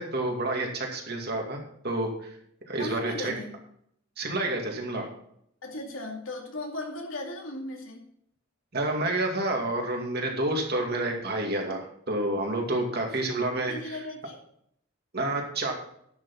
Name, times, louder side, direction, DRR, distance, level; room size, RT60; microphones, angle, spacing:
voice 1, 0.0-1.6 1.8-2.3 2.7-3.3 4.2-5.1 8.7-14.0 15.1-15.7, right 2 dB, 50° right, 1 dB, 2.4 m, -29 dB
voice 2, 2.8-3.6 5.6-8.1 12.9-14.4, left 1 dB, 80° left, 1 dB, 2.5 m, -37 dB
10.5 x 7.0 x 5.7 m, 0.69 s
head